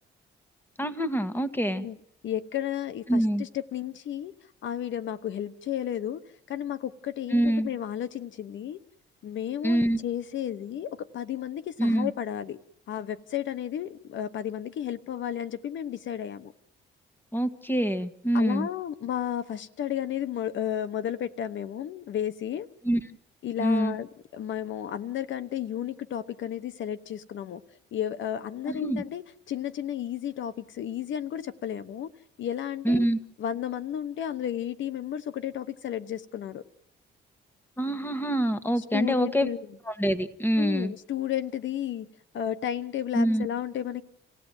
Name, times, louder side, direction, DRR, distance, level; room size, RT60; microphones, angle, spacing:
voice 1, 0.8-1.9 3.1-3.5 7.3-7.7 9.6-10.0 11.8-12.1 17.3-18.7 22.8-23.0 23.6-23.9 28.7-29.0 32.8-33.2 37.8-39.5 39.9-40.9 43.1-43.5, right 1 dB, 10° left, 10 dB, 1.7 m, -25 dB
voice 2, 2.2-4.3 4.6-6.2 6.5-8.8 9.2-12.6 12.9-16.5 18.3-22.7 23.4-27.6 27.9-32.1 32.4-33.1 33.4-36.6 38.8-39.6 40.6-42.1 42.3-44.0, left 10 dB, 70° left, 14 dB, 1.0 m, -33 dB
27.5 x 16.5 x 9.1 m, 0.76 s
cardioid pair, 90°, 20 cm